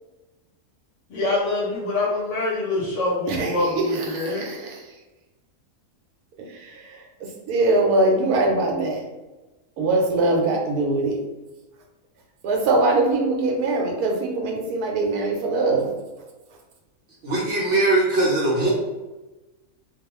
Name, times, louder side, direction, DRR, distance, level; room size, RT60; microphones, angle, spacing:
voice 1, 1.1-4.4, left 2 dB, 60° left, -3 dB, 0.9 m, -25 dB
voice 2, 3.3-4.8 6.5-7.0 7.5-9.0 9.8-11.2 12.4-15.9, right 2 dB, 80° right, 1 dB, 1.1 m, -22 dB
voice 3, 17.2-18.7, right 2 dB, 60° right, -4 dB, 0.8 m, -20 dB
2.3 x 2.3 x 2.9 m, 1.1 s
omnidirectional pair, 1.6 m